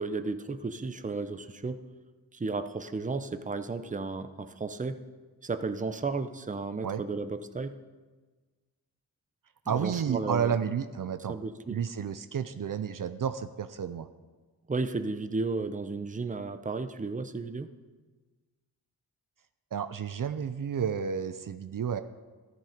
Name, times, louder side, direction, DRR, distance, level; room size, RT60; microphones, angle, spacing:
voice 1, 0.0-1.8 2.3-5.0 5.4-7.7 9.7-10.6 11.3-11.8 14.7-17.7, right 3 dB, 20° right, 10 dB, 0.7 m, -33 dB
voice 2, 9.7-11.4 11.7-14.1 19.7-22.0, right 7 dB, 55° right, 10 dB, 0.6 m, -31 dB
13.0 x 11.0 x 5.1 m, 1.3 s
wide cardioid pair, 80°, 38 cm